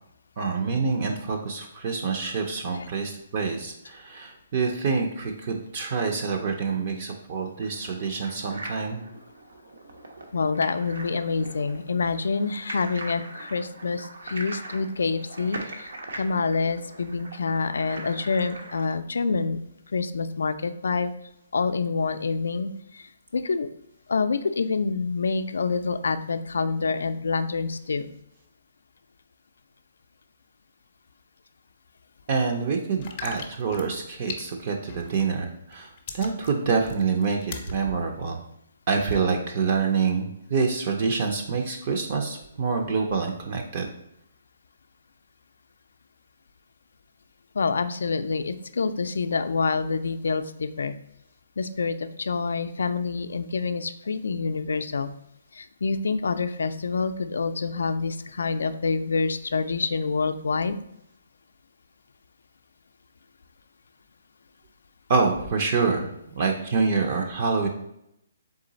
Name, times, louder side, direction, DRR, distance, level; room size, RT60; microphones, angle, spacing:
voice 1, 0.4-9.0 32.3-35.9 36.1-38.4 38.9-43.9 65.1-66.1 66.4-67.7, right 4 dB, 35° right, 3 dB, 0.4 m, -26 dB
sound 1, 7.5-18.9, right 2 dB, 80° right, 0.8 m, -41 dB
voice 2, 10.3-19.6 19.9-21.1 21.5-23.7 24.1-28.1 47.5-50.9 51.6-55.1 55.5-60.8, left 4 dB, 85° left, 10 dB, 0.3 m, -27 dB
sound 2, 33.0-35.4 35.7-37.8 38.3-38.4, left 6 dB, 25° left, 0.5 m, -39 dB
3.7 x 3.2 x 3.9 m, 0.79 s
hypercardioid pair, 170°, 0 cm